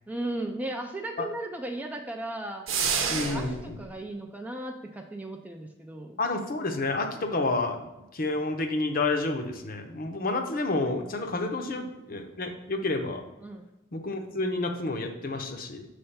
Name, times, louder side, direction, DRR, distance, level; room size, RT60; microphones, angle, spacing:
voice 1, 0.1-2.7 3.1-6.2 11.7-11.9 13.4-13.7, right 1 dB, 10° right, 3 dB, 0.3 m, -36 dB
sound 1, 2.7-3.7, right 6 dB, 70° right, 0.8 m, -28 dB
voice 2, 3.1-3.8 6.2-7.9 8.1-13.2 13.9-15.9, left 2 dB, 45° left, 5 dB, 0.7 m, -29 dB
6.6 x 3.3 x 5.5 m, 0.98 s
head